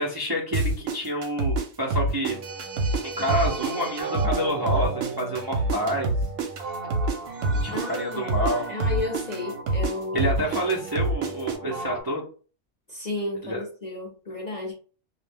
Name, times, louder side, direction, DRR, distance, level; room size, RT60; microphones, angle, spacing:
voice 1, 0.0-2.4 3.0-6.1 7.6-8.7 10.1-12.2 13.4-13.6, equal, 35° right, 0.3 m, -28 dB
sound 1, 0.5-3.0 3.3-7.2 7.4-11.6, right 2 dB, 70° right, 1.0 m, -26 dB
sound 2, 2.3-12.0, right 3 dB, 55° right, 0.7 m, -36 dB
voice 2, 7.7-10.3 12.9-14.7, left 2 dB, 45° left, 0.5 m, -33 dB
2.4 x 2.0 x 3.4 m
omnidirectional pair, 1.4 m